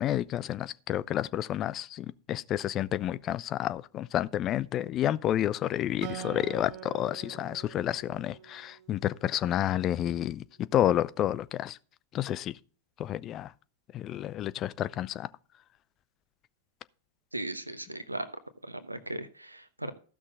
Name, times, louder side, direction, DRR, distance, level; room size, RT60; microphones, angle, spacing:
voice 1, 0.0-11.8 12.1-12.6 13.0-13.5 13.9-15.3, left 12 dB, 30° left, 0.5 m, -30 dB
Acoustic guitar, 6.0-9.5, right 12 dB, 40° right, 1.3 m, -44 dB
voice 2, 17.3-18.3 18.6-19.9, right 1 dB, 85° right, 0.9 m, -37 dB
14.5 x 6.2 x 3.9 m
figure-of-eight pair, 90°, 0 cm